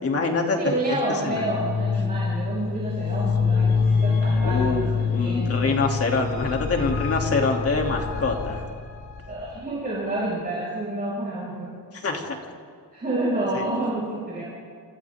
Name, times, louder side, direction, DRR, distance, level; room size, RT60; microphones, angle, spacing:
voice 1, 0.0-1.4 4.4-4.8 5.1-8.7 11.9-12.4 13.5-13.6, left 3 dB, 35° left, 1 dB, 2.9 m, -25 dB
voice 2, 0.6-5.8 9.3-11.8 12.9-14.4, right 1 dB, 25° right, -6 dB, 5.9 m, -29 dB
sound 1, 1.3-9.6, left 5 dB, 55° left, 7.4 m, -26 dB
28.0 x 28.0 x 3.7 m, 2.1 s
wide cardioid pair, 160°, 38 cm